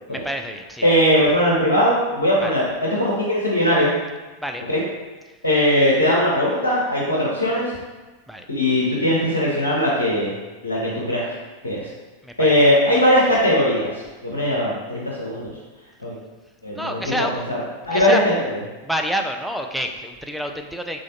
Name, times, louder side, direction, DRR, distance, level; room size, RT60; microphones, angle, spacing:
voice 1, 0.1-0.9 2.4-2.5 4.4-4.6 8.3-8.5 12.2-12.5 16.8-17.3 17.9-18.2 18.8-21.0, equal, ahead, 3 dB, 0.3 m, -28 dB
voice 2, 0.8-3.9 4.7-4.8 5.4-7.8 8.5-10.3 10.6-11.2 11.6-11.9 12.4-13.9 14.2-15.5 16.0-16.2 16.6-17.6 17.8-18.5, equal, 75° left, -5 dB, 0.7 m, -19 dB
3.6 x 3.1 x 2.8 m, 1.2 s
figure-of-eight pair, 90°, 0 cm